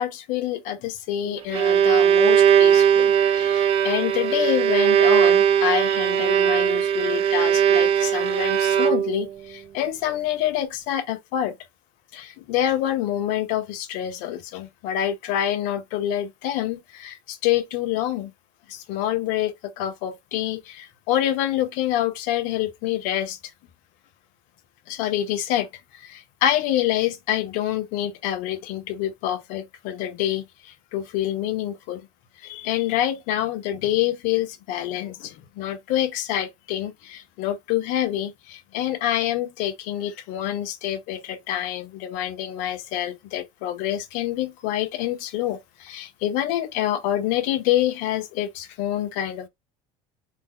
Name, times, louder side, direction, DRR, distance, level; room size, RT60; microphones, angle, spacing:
voice 1, 0.0-11.6 12.1-18.3 18.7-23.4 24.9-32.1 32.4-49.5, left 12 dB, 70° left, 0.6 m, -27 dB
Bowed string instrument, 1.3-9.3, right 9 dB, 45° right, 0.5 m, -19 dB
2.6 x 2.1 x 3.6 m
supercardioid pair, 105°, 14 cm